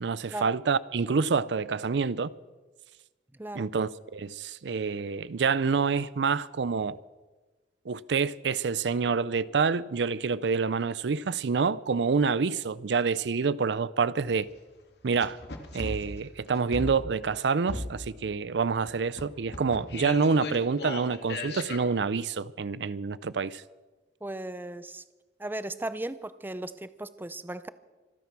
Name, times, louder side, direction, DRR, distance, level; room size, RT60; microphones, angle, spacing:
voice 1, 0.0-2.3 3.5-7.0 7.9-14.5 15.0-15.4 15.7-23.6, right 5 dB, 80° right, 0.5 m, -27 dB
sound 1, 14.2-14.3 15.1-17.4 17.7-18.3 18.8-21.8, left 2 dB, 65° left, 2.1 m, -37 dB
voice 2, 24.2-25.0 25.4-27.7, right 1 dB, 10° right, 0.6 m, -36 dB
25.5 x 9.4 x 6.0 m
head